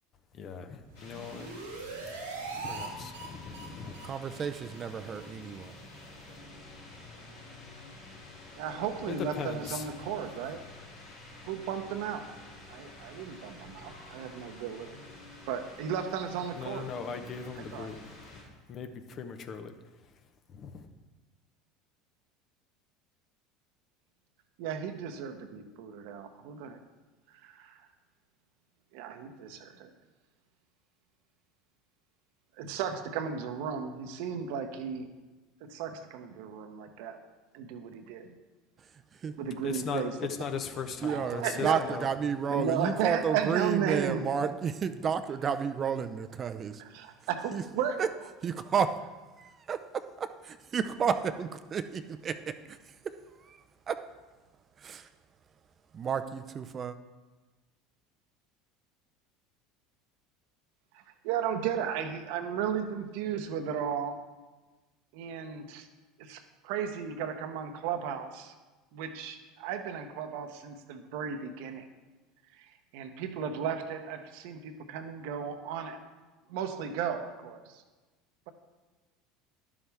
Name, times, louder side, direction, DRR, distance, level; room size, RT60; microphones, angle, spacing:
voice 1, 0.3-1.5 2.5-4.0 9.1-9.9 16.5-18.1 18.3-18.4 18.7-19.7 20.5-20.9 39.6-42.1, left 6 dB, 45° left, 8 dB, 0.9 m, -38 dB
sound 1, 0.8-2.9 3.1-3.3 3.5-3.7 3.9-4.1 4.3-4.5 4.7-4.9 5.1-5.3 5.5-5.7 6.0-6.1, right 4 dB, 90° right, 1.7 m, -41 dB
sound 2, 0.9-18.4, left 2 dB, 75° left, 3.3 m, -49 dB
voice 2, 4.0-5.8 39.2-39.3 41.0-46.8 47.5-47.6 48.0-48.1 48.4-48.9 49.4-49.8 50.7-53.1 53.4-53.6 53.9-54.0 54.8-55.1 55.9-57.0, right 6 dB, 35° right, 10 dB, 0.5 m, -31 dB
voice 3, 8.6-10.6 11.5-12.3 12.7-15.0 15.5-16.9 17.7-17.9 24.6-26.8 27.4-27.8 28.9-29.9 32.6-35.1 35.6-37.2 37.5-38.3 39.4-40.1 41.1-41.8 42.5-44.2 46.8-48.0 60.9-64.2 65.1-65.9 66.2-68.5 68.9-71.9 72.6-72.7 72.9-76.0 76.5-77.8, right 8 dB, 65° right, 7 dB, 0.9 m, -35 dB
11.0 x 7.2 x 3.5 m, 1.2 s
hypercardioid pair, 75°, 0 cm